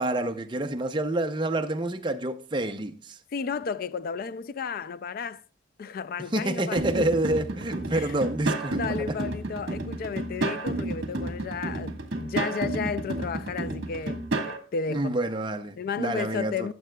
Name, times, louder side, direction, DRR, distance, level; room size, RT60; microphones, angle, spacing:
voice 1, 0.0-3.2 6.3-9.2 14.9-16.7, right 1 dB, 25° right, 0.6 m, -28 dB
voice 2, 3.3-5.4 5.8-7.1 7.9-8.1 8.7-15.2 15.8-16.7, left 5 dB, 45° left, 0.3 m, -33 dB
sound 1, 6.8-14.6, right 2 dB, 55° right, 1.5 m, -31 dB
15.5 x 7.4 x 2.3 m
head